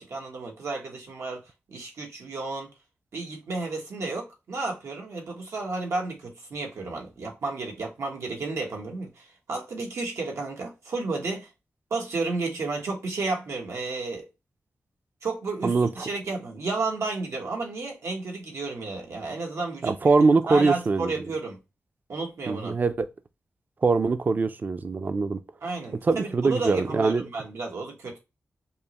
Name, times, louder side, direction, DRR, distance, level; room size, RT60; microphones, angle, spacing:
voice 1, 0.0-1.4 1.7-2.7 3.1-11.5 11.9-14.3 15.2-19.9 20.5-21.6 22.1-22.7 25.6-28.2, right 3 dB, 90° right, 1.1 m, -32 dB
voice 2, 15.6-16.1 19.8-21.1 22.5-23.1 23.8-25.4 26.0-27.2, right 4 dB, 40° right, 0.4 m, -23 dB
5.5 x 2.0 x 2.9 m
wide cardioid pair, 125°, 5 cm